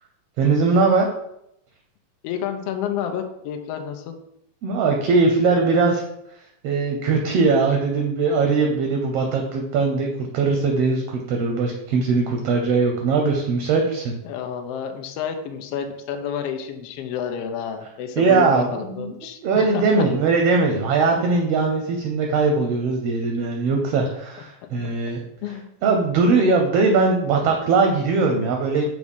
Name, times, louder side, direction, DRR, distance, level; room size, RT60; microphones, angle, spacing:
voice 1, 0.4-1.1 4.6-6.0 6.6-14.1 18.2-19.1 19.4-25.2 25.8-28.8, right 4 dB, 75° right, 2 dB, 1.5 m, -20 dB
voice 2, 2.2-4.2 13.1-13.2 14.2-20.0 25.4-25.7, left 8 dB, 80° left, 6 dB, 1.4 m, -30 dB
6.1 x 3.1 x 5.3 m, 0.77 s
omnidirectional pair, 3.3 m